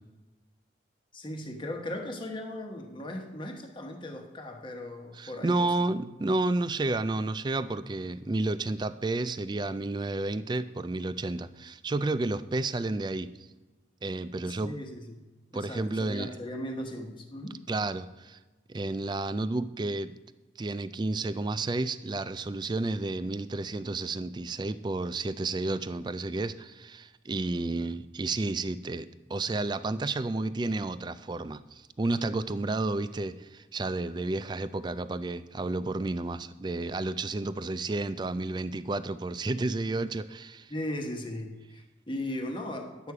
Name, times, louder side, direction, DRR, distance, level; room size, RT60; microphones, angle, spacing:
voice 1, 1.1-5.9 14.5-15.1 15.5-17.6 40.7-43.1, left 1 dB, 25° left, 3 dB, 1.1 m, -38 dB
voice 2, 5.1-13.3 14.0-14.7 15.5-16.3 17.7-18.4 18.7-20.1 20.6-40.7, right 2 dB, 25° right, 14 dB, 0.3 m, -31 dB
11.0 x 8.2 x 4.8 m, 1.2 s
head